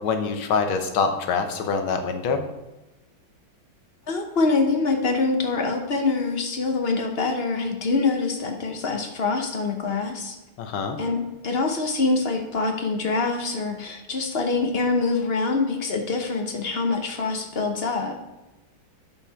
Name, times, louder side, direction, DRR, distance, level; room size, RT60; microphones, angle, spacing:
voice 1, 0.0-2.4 10.6-11.0, left 5 dB, 80° left, 6 dB, 1.7 m, -25 dB
voice 2, 4.1-10.4 11.0-18.2, left 3 dB, 55° left, 4 dB, 0.6 m, -25 dB
6.8 x 5.8 x 5.6 m, 1.0 s
omnidirectional pair, 2.3 m